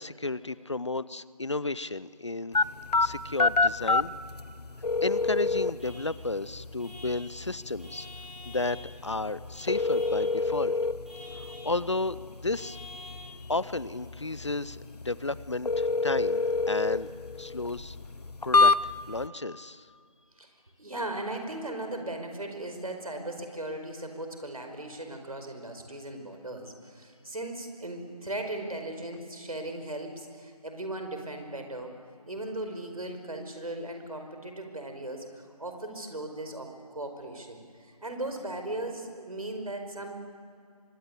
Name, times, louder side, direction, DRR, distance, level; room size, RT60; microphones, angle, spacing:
voice 1, 0.0-2.6 3.0-4.1 5.0-8.1 8.4-10.7 11.3-12.8 13.5-17.1 17.4-18.0 18.4-19.9, left 2 dB, 50° left, 18 dB, 0.6 m, -33 dB
sound 1, 2.5-19.3, left 3 dB, 85° left, 0.8 m, -29 dB
Vehicle horn car horn honking / Truck, 5.8-6.1 6.8-7.2 7.8-8.8 9.5-10.2 11.0-11.7 12.5-13.3, left 1 dB, ahead, 3.0 m, -47 dB
voice 2, 20.4-32.0 32.3-40.2, right 1 dB, 65° right, 5 dB, 5.2 m, -37 dB
24.5 x 17.0 x 9.9 m, 2.4 s
figure-of-eight pair, 170°, 20 cm